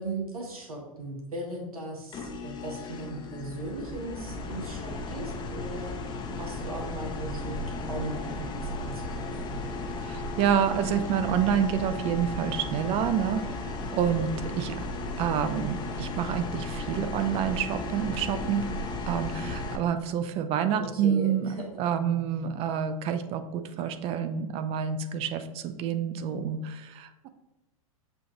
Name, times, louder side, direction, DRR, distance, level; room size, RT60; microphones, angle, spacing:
voice 1, 0.0-9.6 20.7-21.6, right 1 dB, 85° right, 0 dB, 1.1 m, -38 dB
sound 1, 2.1-19.8, left 2 dB, 25° left, 0.6 m, -35 dB
voice 2, 10.0-14.9 15.2-18.7 19.1-21.5 21.8-27.3, right 8 dB, 30° right, 9 dB, 0.4 m, -28 dB
6.7 x 2.5 x 2.9 m, 1.0 s
hypercardioid pair, 105°, 18 cm